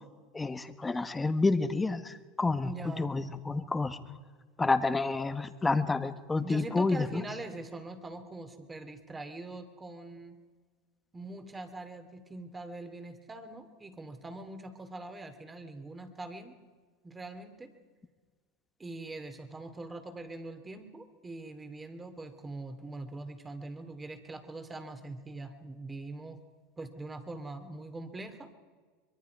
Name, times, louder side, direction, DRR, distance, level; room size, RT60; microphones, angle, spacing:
voice 1, 0.3-4.0 4.6-7.2, left 3 dB, 15° left, 10 dB, 1.4 m, -29 dB
voice 2, 2.6-3.1 6.4-10.4 11.1-16.5 17.0-17.7 18.8-26.4 26.8-28.5, right 2 dB, 15° right, 8 dB, 2.6 m, -43 dB
24.5 x 22.0 x 4.8 m, 1.5 s
hypercardioid pair, 100°, 0 cm